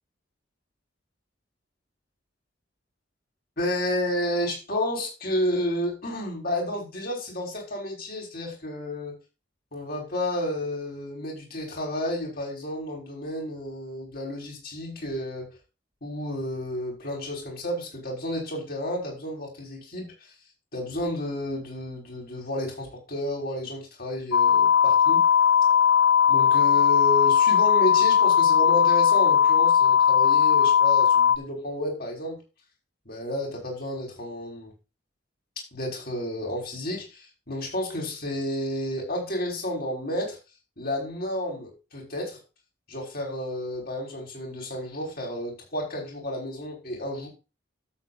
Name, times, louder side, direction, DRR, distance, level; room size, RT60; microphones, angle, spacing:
voice 1, 3.6-9.1 9.7-15.6 16.0-20.1 20.7-25.2 26.3-32.4 33.1-34.7 35.7-40.4 40.8-42.4 42.9-47.3, left 1 dB, 50° left, -1 dB, 5.5 m, -31 dB
sound 1, 24.3-31.4, left 8 dB, 85° left, 0.5 m, -19 dB
12.5 x 8.4 x 2.7 m, 0.28 s
head